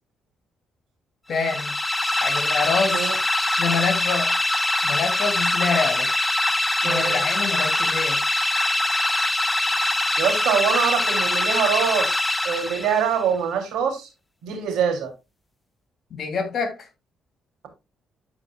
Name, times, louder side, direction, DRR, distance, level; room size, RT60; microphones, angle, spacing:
voice 1, 1.3-1.7 2.2-3.1 3.6-4.3 4.8-6.1 6.8-8.2 16.1-16.8, left 5 dB, 60° left, 3.1 m, -26 dB
sound 1, 1.3-13.2, left 2 dB, 10° left, 0.9 m, -23 dB
voice 2, 6.8-7.3 10.2-14.1 14.4-15.1, right 7 dB, 85° right, 3.0 m, -24 dB
14.0 x 4.9 x 2.4 m
cardioid pair, 90°, 0 cm